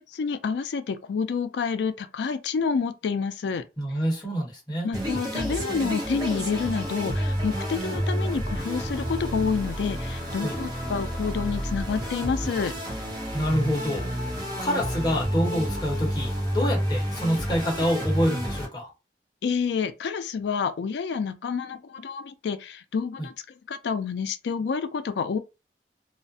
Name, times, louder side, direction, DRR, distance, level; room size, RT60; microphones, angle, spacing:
voice 1, 0.0-3.6 4.8-12.7 19.4-23.3 23.7-25.4, left 5 dB, 80° left, 0.4 m, -28 dB
voice 2, 3.8-4.9 10.4-10.5 13.3-14.1 14.6-18.9, equal, 25° left, 1.0 m, -27 dB
sound 1, 4.9-18.7, equal, 25° right, 0.7 m, -30 dB
2.4 x 2.1 x 2.6 m
head